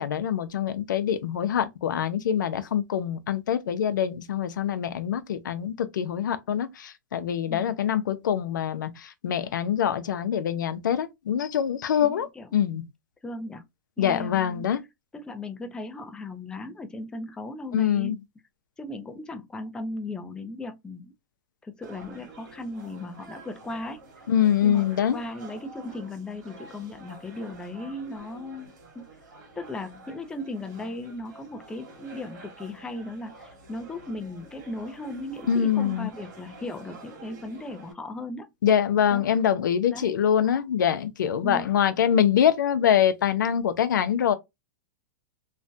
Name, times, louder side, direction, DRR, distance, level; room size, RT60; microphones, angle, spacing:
voice 1, 0.0-12.8 14.0-14.8 17.7-18.2 24.3-25.2 35.5-36.1 38.6-44.3, left 9 dB, 85° left, 0.5 m, -24 dB
voice 2, 12.0-12.5 13.2-13.7 14.0-14.7 15.1-18.2 18.8-21.1 21.6-24.0 24.6-29.1 29.6-38.5 39.1-39.3 39.9-40.1 41.4-41.7, left 1 dB, 10° left, 0.4 m, -37 dB
sound 1, 21.8-37.9, right 3 dB, 75° right, 1.6 m, -48 dB
3.2 x 2.1 x 2.6 m
hypercardioid pair, 130°, 10 cm